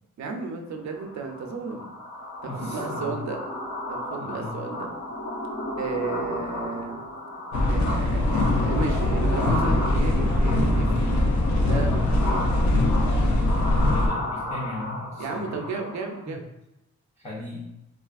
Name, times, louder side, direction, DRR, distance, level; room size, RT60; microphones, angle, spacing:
voice 1, 0.2-1.9 2.4-3.4 3.9-4.9 5.8-7.0 7.7-11.3 11.6-12.4 15.2-16.4, right 4 dB, 70° right, 4 dB, 0.5 m, -33 dB
sound 1, 0.9-16.2, left 1 dB, 90° left, 1.1 m, -34 dB
voice 2, 2.5-3.2 4.2-4.5 13.8-15.6 16.3-16.4 17.2-17.6, left 2 dB, 20° left, -6 dB, 0.6 m, -37 dB
sound 2, 7.5-14.1, left 1 dB, 75° left, 0.6 m, -22 dB
3.2 x 2.4 x 2.3 m, 0.88 s
cardioid pair, 95°, 30 cm